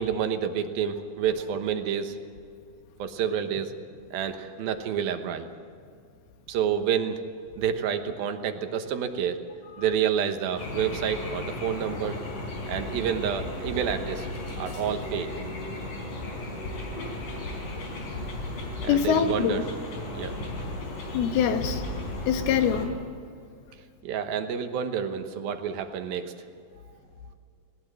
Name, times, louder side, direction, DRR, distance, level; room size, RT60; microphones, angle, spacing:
voice 1, 0.0-2.2 3.0-3.8 4.1-5.5 6.5-7.2 7.6-9.4 9.8-12.2 12.7-14.3 14.6-15.3 18.8-19.7 20.1-20.5 24.0-26.3, right 8 dB, 75° right, 7 dB, 2.9 m, -29 dB
sound 1, 10.6-22.9, left 2 dB, 60° left, 5.5 m, -35 dB
voice 2, 18.9-19.7 21.1-21.8 22.3-22.9, left 8 dB, 80° left, 7 dB, 3.2 m, -24 dB
19.5 x 19.0 x 7.6 m, 2.3 s
omnidirectional pair, 4.5 m